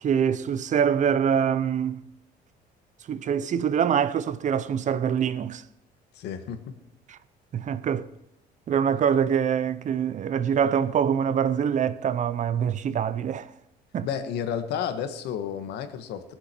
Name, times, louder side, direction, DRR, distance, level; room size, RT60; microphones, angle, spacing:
voice 1, 0.0-2.0 3.1-5.6 7.1-7.2 7.5-8.1 8.7-13.5 13.9-14.1, right 8 dB, 45° right, 0.7 m, -24 dB
voice 2, 6.1-6.8 14.0-16.3, left 8 dB, 80° left, 1.5 m, -31 dB
21.5 x 7.7 x 4.5 m
cardioid pair, 110°, 17 cm